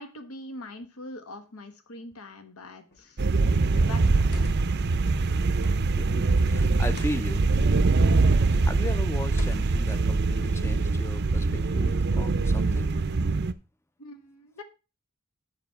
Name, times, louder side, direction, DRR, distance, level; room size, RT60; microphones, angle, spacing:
voice 1, 0.0-4.3 14.0-14.6, left 2 dB, 80° left, 1.2 m, -43 dB
sound 1, 2.9-3.2 4.1-4.8 5.6-6.0 6.8-7.2 8.1-8.5 9.3-9.9, left 1 dB, 45° left, 1.2 m, -42 dB
sound 2, 3.2-13.5, right 3 dB, 50° right, 0.5 m, -23 dB
voice 2, 6.0-7.5 8.6-12.9, left 1 dB, 10° left, 0.4 m, -37 dB
7.0 x 6.1 x 5.5 m
head